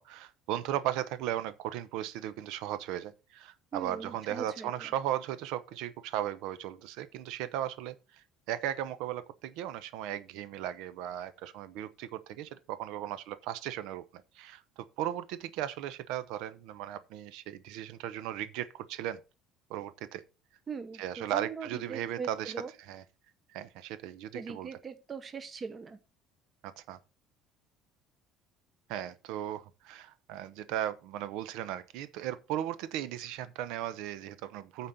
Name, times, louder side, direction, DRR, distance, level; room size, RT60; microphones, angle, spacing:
voice 1, 0.0-19.2 19.7-20.2 21.0-22.5 22.9-23.0 23.5-24.7 26.6-27.0 28.9-34.9, right 12 dB, 70° right, 0.9 m, -37 dB
voice 2, 3.7-4.9 20.7-22.7 24.3-26.0, right 5 dB, 20° right, 1.0 m, -41 dB
9.2 x 4.3 x 6.5 m
cardioid pair, 170°, 0 cm